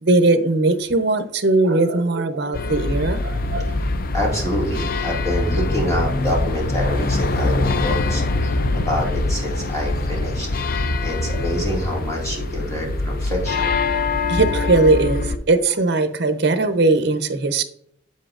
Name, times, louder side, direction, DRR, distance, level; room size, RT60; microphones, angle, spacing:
voice 1, 0.0-3.7 14.3-17.6, right 2 dB, 60° right, 0.7 m, -19 dB
sound 1, 2.5-15.4, left 2 dB, 50° left, 0.5 m, -23 dB
voice 2, 4.1-10.5 11.0-13.7, equal, 15° left, 2.1 m, -26 dB
7.9 x 7.4 x 2.5 m
head